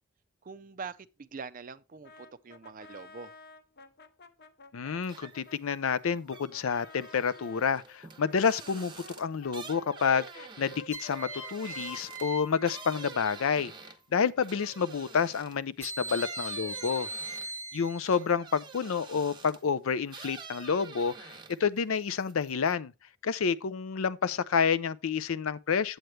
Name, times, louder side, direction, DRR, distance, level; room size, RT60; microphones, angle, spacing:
voice 1, 0.4-3.4, right 5 dB, 40° right, 0.4 m, -44 dB
Brass instrument, 2.0-7.7 8.2-13.0, left 3 dB, 45° left, 0.8 m, -52 dB
voice 2, 4.7-13.7 14.1-17.1 17.7-22.9 23.2-26.0, left 6 dB, 70° left, 0.5 m, -29 dB
Creaky door, 5.0-5.6 5.9-15.6 16.0-19.7 20.1-21.8 22.1-22.7, right 4 dB, 20° right, 0.8 m, -48 dB
sound 1, 7.8-8.4 10.9-13.6 15.8-18.4, right 1 dB, 10° left, 1.0 m, -40 dB
9.1 x 7.9 x 3.2 m
head